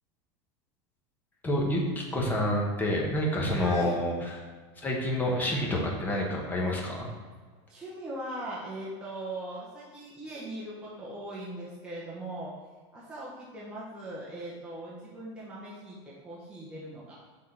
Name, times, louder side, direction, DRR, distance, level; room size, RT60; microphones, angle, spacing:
voice 1, 1.4-4.1 4.8-7.1, left 1 dB, 10° left, -1 dB, 1.0 m, -28 dB
voice 2, 3.5-4.0 7.7-12.5 12.9-17.2, right 1 dB, 5° right, -7 dB, 0.9 m, -40 dB
6.2 x 3.6 x 5.8 m, 1.5 s
supercardioid pair, 165°, 15 cm